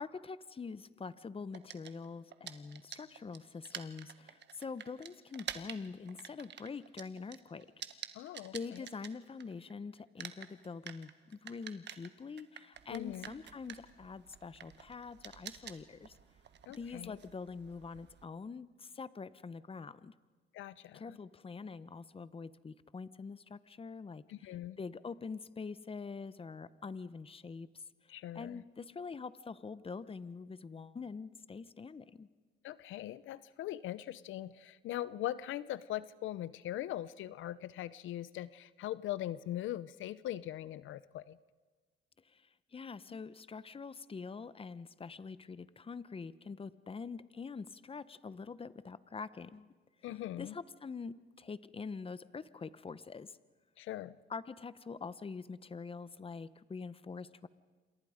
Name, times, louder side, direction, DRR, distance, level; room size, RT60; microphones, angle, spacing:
voice 1, 0.0-7.7 8.5-16.2 16.8-20.1 20.9-27.7 28.3-32.3 42.3-42.4 42.7-49.7 50.1-53.4 54.3-57.5, left 5 dB, 30° left, 16 dB, 1.0 m, -45 dB
sound 1, 1.5-9.7 10.0-18.2, right 9 dB, 60° right, 1.6 m, -49 dB
voice 2, 8.1-8.9 12.9-13.4 16.7-17.2 20.5-21.2 24.3-24.8 28.1-28.6 32.6-41.4 50.0-50.6 53.8-54.2, left 13 dB, 80° left, 17 dB, 0.7 m, -41 dB
28.0 x 27.0 x 5.1 m, 1.4 s
cardioid pair, 90°, 20 cm